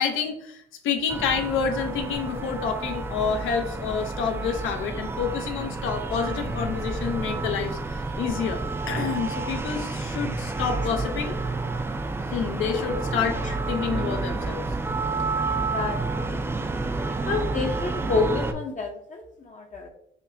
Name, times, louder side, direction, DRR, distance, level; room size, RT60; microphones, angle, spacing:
voice 1, 0.0-8.6 8.9-11.3 12.3-13.4 13.7-14.6, left 6 dB, 90° left, 5 dB, 0.6 m, -28 dB
sound 1, 1.1-18.5, right 3 dB, 10° right, 0.3 m, -30 dB
voice 2, 15.7-16.5 17.3-19.9, left 4 dB, 40° left, 2 dB, 0.6 m, -29 dB
5.0 x 2.1 x 2.6 m, 0.71 s
cardioid pair, 90°, 20 cm